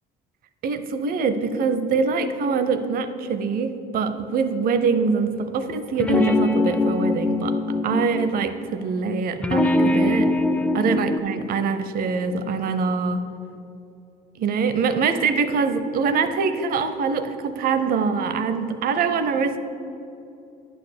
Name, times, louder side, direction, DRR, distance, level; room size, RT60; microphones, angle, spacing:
voice 1, 0.6-7.6 7.8-10.3 10.7-13.2 14.4-19.6, right 5 dB, 60° right, 10 dB, 0.7 m, -24 dB
sound 1, 5.9-8.4 9.4-11.2, left 2 dB, 5° left, 0.4 m, -22 dB
10.0 x 4.3 x 6.7 m, 2.7 s
cardioid pair, 110°, 17 cm